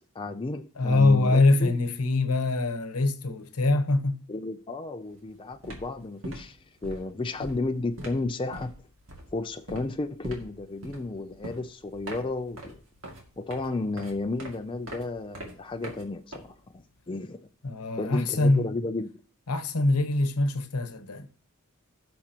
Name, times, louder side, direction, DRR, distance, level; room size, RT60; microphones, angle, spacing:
voice 1, 0.1-1.8 4.3-8.7 9.3-12.8 13.4-17.4 18.0-19.1, left 2 dB, 20° left, 0.4 m, -33 dB
voice 2, 0.8-4.2 17.6-18.7 19.5-21.3, left 2 dB, 85° left, 1.0 m, -24 dB
sound 1, 5.0-5.2 5.5-16.9, right 1 dB, 65° right, 2.3 m, -43 dB
16.0 x 6.0 x 2.9 m
head